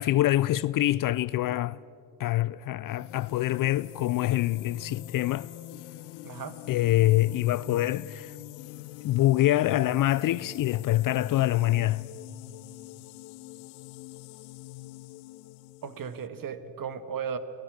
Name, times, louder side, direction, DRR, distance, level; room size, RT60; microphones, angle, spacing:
voice 1, 0.0-1.8 2.2-5.5 6.7-8.4 9.0-12.1, left 15 dB, 45° left, 0.5 m, -25 dB
sound 1, 2.8-16.3, left 18 dB, 70° left, 0.9 m, -45 dB
voice 2, 6.2-6.6 15.8-17.4, right 7 dB, 40° right, 1.9 m, -35 dB
29.5 x 19.5 x 6.5 m
hypercardioid pair, 75°, 49 cm